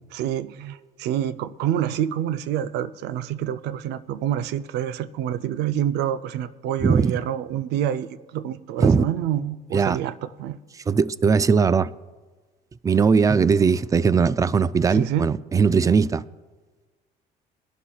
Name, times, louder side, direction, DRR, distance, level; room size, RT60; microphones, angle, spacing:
voice 1, 0.1-10.6 14.9-15.3, right 10 dB, 80° right, 0.5 m, -27 dB
voice 2, 6.8-7.1 8.8-9.0 9.7-10.0 10.9-11.9 12.8-16.2, right 5 dB, 20° right, 0.3 m, -19 dB
21.0 x 11.5 x 2.3 m
cardioid pair, 110°, 17 cm